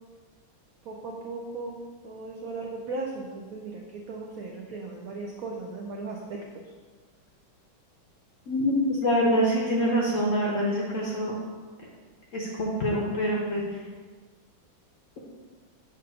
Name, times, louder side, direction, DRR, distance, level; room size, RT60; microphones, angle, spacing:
voice 1, 0.8-6.6, right 3 dB, 80° right, 0 dB, 0.8 m, -37 dB
voice 2, 8.5-8.8 9.0-11.3 12.3-13.6, equal, 60° left, -3 dB, 0.8 m, -25 dB
6.7 x 2.6 x 5.5 m, 1.5 s
omnidirectional pair, 2.1 m